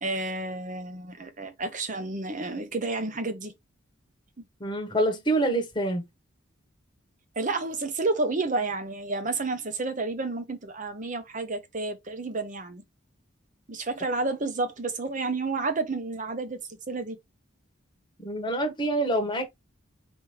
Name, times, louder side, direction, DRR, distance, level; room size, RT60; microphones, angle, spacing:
voice 1, 0.0-3.5 7.4-12.8 13.7-16.6 16.9-17.2, right 3 dB, 40° right, 0.9 m, -30 dB
voice 2, 4.6-6.0 18.2-19.5, right 1 dB, 20° left, 1.2 m, -26 dB
4.9 x 3.0 x 3.2 m
head